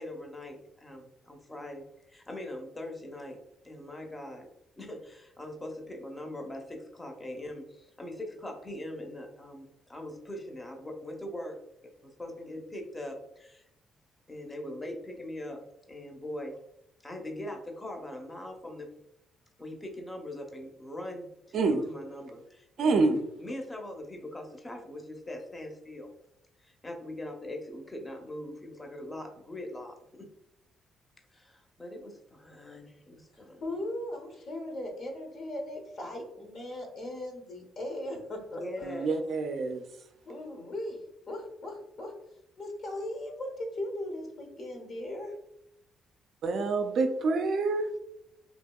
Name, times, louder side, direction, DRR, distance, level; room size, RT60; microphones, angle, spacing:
voice 1, 0.0-3.4 3.6-4.5 4.8-11.6 12.2-13.7 14.3-15.6 15.9-16.6 17.0-18.9 19.6-23.1 23.4-26.1 26.6-30.3 31.3-33.6 38.5-39.2, left 1 dB, 15° left, 3 dB, 0.6 m, -41 dB
voice 2, 21.5-21.8 22.8-23.2 38.8-39.8 46.4-48.0, right 3 dB, 65° right, 6 dB, 0.3 m, -27 dB
voice 3, 33.3-39.1 40.3-41.0 41.3-42.2 42.6-45.3, left 1 dB, 60° left, 2 dB, 0.8 m, -38 dB
2.8 x 2.7 x 2.2 m, 0.80 s
cardioid pair, 90°, 0 cm